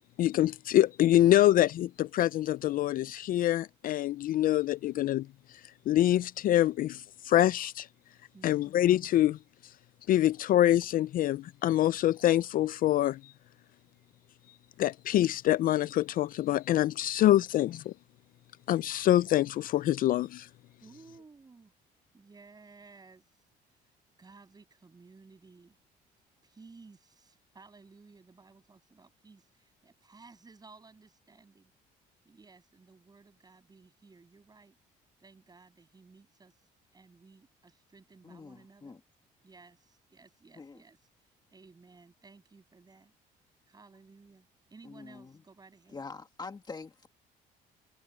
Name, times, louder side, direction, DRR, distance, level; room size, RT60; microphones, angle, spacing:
voice 1, 0.2-5.6 5.9-7.9 8.4-9.7 10.1-13.3 14.8-17.9 18.7-20.5, left 13 dB, 55° left, 0.4 m, -25 dB
voice 2, 8.3-8.7 17.3-17.4 20.8-21.7 22.1-23.2 24.2-25.8 26.4-31.7 32.2-34.8 35.2-36.5 36.9-39.0 39.4-41.1 41.5-43.1 43.7-46.0, right 4 dB, 25° right, 7.9 m, -56 dB
voice 3, 38.2-39.0 40.6-40.8 44.8-45.4 45.9-47.1, left 4 dB, 25° left, 2.1 m, -45 dB
cardioid pair, 110°, 17 cm